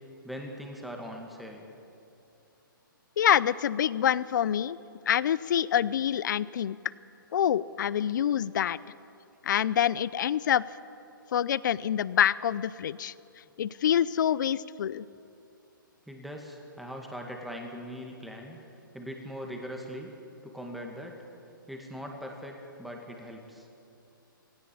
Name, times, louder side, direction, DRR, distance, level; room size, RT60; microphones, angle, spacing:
voice 1, 0.2-1.6 16.1-18.6 18.9-20.1 20.4-21.2 21.7-23.7, equal, ahead, 1 dB, 2.1 m, -40 dB
voice 2, 3.2-4.8 5.1-6.8 7.3-8.8 9.4-10.6 11.3-13.1 13.6-15.0, left 9 dB, 60° left, 20 dB, 0.6 m, -26 dB
18.5 x 17.0 x 8.9 m, 2.7 s
hypercardioid pair, 140°, 12 cm